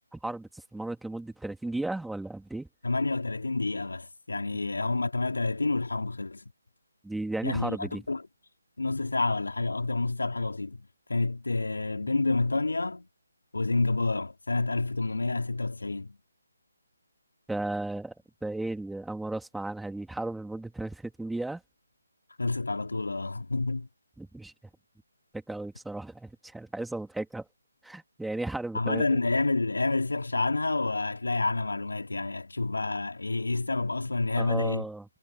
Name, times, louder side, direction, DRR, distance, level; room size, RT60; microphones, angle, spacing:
voice 1, 0.1-2.7 7.0-8.0 17.5-18.1 18.4-21.6 24.2-24.5 25.3-27.5 27.8-29.2 34.4-35.0, right 2 dB, ahead, 2.8 m, -35 dB
voice 2, 2.8-6.5 7.4-8.2 8.8-13.1 13.5-16.2 22.4-23.9 28.7-34.9, left 3 dB, 90° left, 3.9 m, -29 dB
figure-of-eight pair, 160°, 0 cm